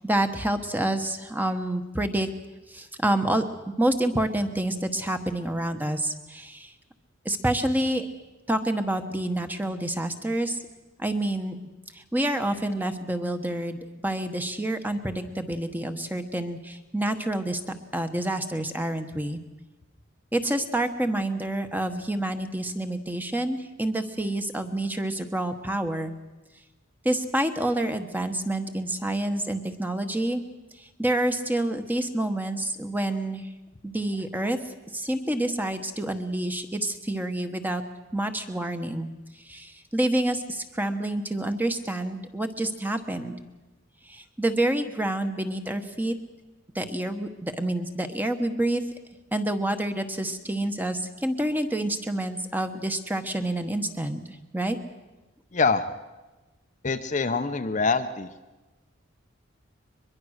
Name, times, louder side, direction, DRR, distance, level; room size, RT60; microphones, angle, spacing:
voice 1, 0.0-2.3 2.7-3.4 3.8-6.7 7.2-8.1 8.5-10.6 11.0-11.6 11.9-17.6 17.9-19.4 20.3-26.1 27.0-30.4 30.8-33.5 33.8-37.8 38.1-39.1 39.5-43.3 44.1-46.1 46.7-48.8 49.3-54.2 54.5-54.8, right 1 dB, 10° right, 7 dB, 1.1 m, -28 dB
voice 2, 55.5-55.9 56.8-58.3, left 4 dB, 35° left, 8 dB, 0.7 m, -25 dB
22.5 x 22.0 x 6.5 m, 1.1 s
head